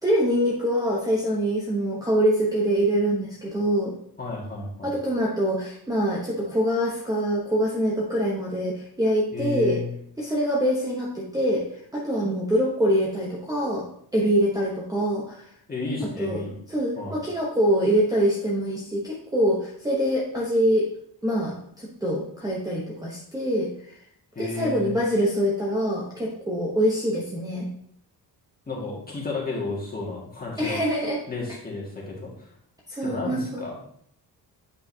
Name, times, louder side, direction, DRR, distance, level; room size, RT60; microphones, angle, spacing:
voice 1, 0.0-3.9 4.8-9.8 10.2-11.6 11.9-13.8 14.1-15.4 16.2-16.4 16.7-20.9 21.2-24.0 24.4-27.7 30.6-31.2 32.9-33.6, equal, 10° right, -4 dB, 0.9 m, -24 dB
voice 2, 4.2-4.9 9.3-9.9 15.7-16.5 17.0-17.2 24.3-24.9 28.7-30.8 31.3-32.5 33.0-33.7, left 3 dB, 20° left, -4 dB, 1.9 m, -32 dB
8.4 x 5.4 x 2.8 m, 0.66 s
wide cardioid pair, 170°, 41 cm